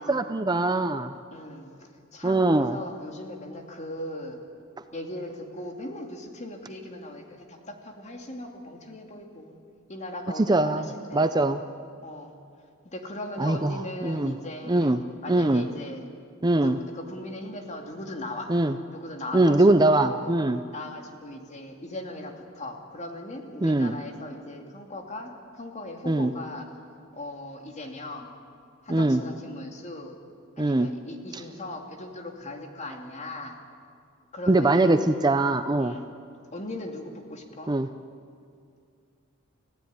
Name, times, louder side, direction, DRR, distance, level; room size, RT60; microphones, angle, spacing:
voice 1, 0.0-1.1 2.2-2.8 10.5-11.6 13.4-14.3 14.7-15.0 15.3-15.7 16.4-16.8 18.5-18.7 19.3-20.6 23.6-23.9 26.1-26.3 28.9-29.2 30.6-30.9 31.3-31.4 34.5-35.9 37.7-37.9, right 2 dB, 20° right, 9 dB, 0.6 m, -22 dB
voice 2, 1.3-4.4 4.9-9.5 9.9-11.3 12.0-12.3 12.9-14.9 15.2-16.1 16.6-18.5 18.9-20.3 20.7-26.7 27.1-28.3 28.8-30.1 30.6-33.6 34.3-35.1 35.8-36.1 36.5-37.7, left 1 dB, 35° left, 3 dB, 2.6 m, -39 dB
29.5 x 15.5 x 9.6 m, 2.4 s
head